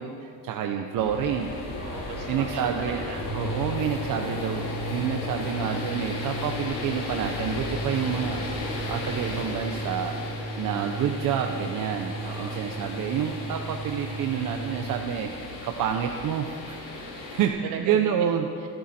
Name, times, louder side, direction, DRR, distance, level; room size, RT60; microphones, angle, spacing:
voice 1, 0.0-1.5 2.3-3.0 3.3-10.2 10.6-18.5, right 8 dB, 50° right, 4 dB, 1.0 m, -29 dB
sound 1, 0.9-17.5, left 2 dB, 50° left, 5.3 m, -35 dB
voice 2, 1.8-3.7 12.2-12.6 17.6-18.3 18.6-18.7, right 5 dB, 70° right, 0 dB, 3.1 m, -39 dB
sound 2, 3.1-14.9, right 1 dB, 10° right, 2.9 m, -36 dB
26.5 x 12.0 x 4.4 m, 2.3 s
cardioid pair, 160°, 41 cm